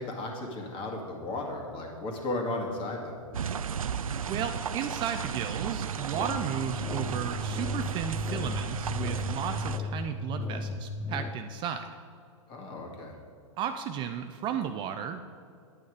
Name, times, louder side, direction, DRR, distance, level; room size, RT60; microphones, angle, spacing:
voice 1, 0.0-3.2 12.5-13.2, left 2 dB, 30° left, 1 dB, 2.0 m, -35 dB
sound 1, 3.3-9.8, right 7 dB, 90° right, 0.4 m, -34 dB
voice 2, 4.3-11.9 13.6-15.2, right 8 dB, 30° right, 8 dB, 0.5 m, -34 dB
sound 2, 6.1-11.3, left 3 dB, 15° left, 0.7 m, -35 dB
9.9 x 8.4 x 4.9 m, 2.3 s
hypercardioid pair, 115°, 17 cm